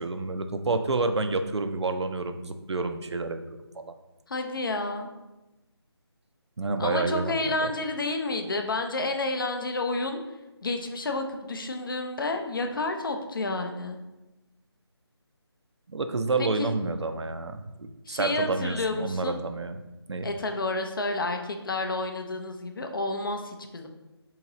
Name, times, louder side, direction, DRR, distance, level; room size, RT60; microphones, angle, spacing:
voice 1, 0.0-3.4 3.8-3.9 6.6-7.7 15.9-17.7 18.1-19.8 20.1-20.3, right 3 dB, 90° right, 8 dB, 0.4 m, -29 dB
voice 2, 4.3-5.1 6.8-10.2 10.6-14.0 16.4-16.7 18.1-19.4 20.2-23.9, left 2 dB, 50° left, 5 dB, 0.5 m, -30 dB
3.7 x 2.9 x 2.9 m, 1.0 s
figure-of-eight pair, 160°, 14 cm